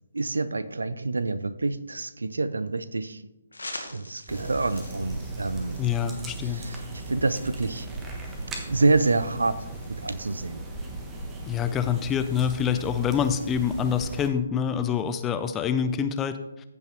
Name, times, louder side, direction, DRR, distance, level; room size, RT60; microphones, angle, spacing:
voice 1, 0.1-3.2 3.9-5.8 6.4-7.9 8.6-10.6, right 3 dB, 75° right, 14 dB, 0.6 m, -27 dB
sound 1, 3.5-10.3, left 2 dB, 75° left, 1.6 m, -46 dB
sound 2, 4.3-14.3, right 2 dB, 15° right, 1.3 m, -37 dB
voice 2, 5.8-6.6 11.5-16.4, left 8 dB, 15° left, 9 dB, 0.5 m, -26 dB
14.5 x 5.3 x 3.3 m, 0.91 s
figure-of-eight pair, 135°, 0 cm